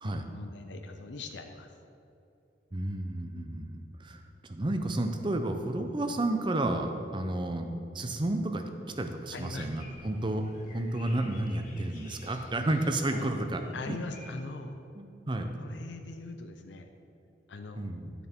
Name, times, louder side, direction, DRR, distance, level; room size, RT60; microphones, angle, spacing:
voice 1, 0.0-1.7 9.3-9.7 13.1-13.2 13.7-14.8 15.6-16.9 17.5-17.8, left 2 dB, 75° left, 6 dB, 0.6 m, -41 dB
voice 2, 2.7-8.6 9.0-10.5 10.7-13.6 13.9-14.0 14.9-15.6 17.8-18.1, right 1 dB, 25° right, 6 dB, 0.6 m, -31 dB
sound 1, 9.3-14.3, left 2 dB, 45° left, 1.7 m, -54 dB
11.0 x 6.8 x 4.4 m, 2.7 s
head